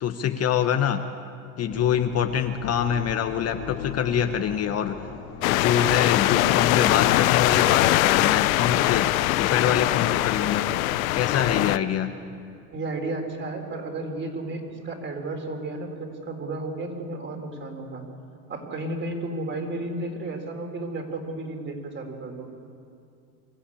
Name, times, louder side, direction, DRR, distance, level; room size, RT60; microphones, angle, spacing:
voice 1, 0.0-1.1 1.6-5.1 5.5-10.7 11.1-12.1, left 8 dB, 35° left, 7 dB, 1.1 m, -25 dB
sound 1, 1.7-9.4, left 8 dB, 65° left, 2.6 m, -40 dB
sound 2, 5.4-11.8, left 16 dB, 85° left, 0.7 m, -22 dB
voice 2, 12.7-18.1 18.5-22.5, right 2 dB, 30° right, 3 dB, 3.9 m, -33 dB
25.0 x 14.0 x 8.6 m, 2.5 s
supercardioid pair, 105°, 40 cm